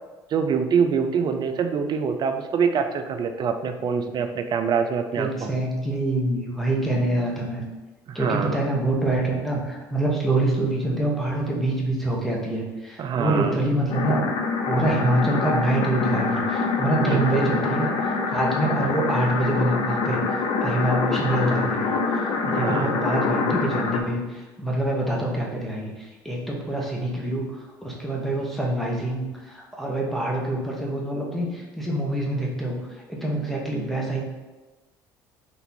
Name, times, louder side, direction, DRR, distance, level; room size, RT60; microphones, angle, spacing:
voice 1, 0.3-5.6 8.1-8.6 13.0-13.6 17.0-17.5 22.4-23.0, right 6 dB, 45° right, 7 dB, 0.5 m, -25 dB
voice 2, 5.2-7.6 8.1-14.3 14.7-34.2, right 1 dB, ahead, -2 dB, 1.2 m, -26 dB
sound 1, 13.9-24.0, left 4 dB, 60° left, 0.6 m, -25 dB
4.1 x 2.7 x 4.3 m, 1.2 s
hypercardioid pair, 60°, 11 cm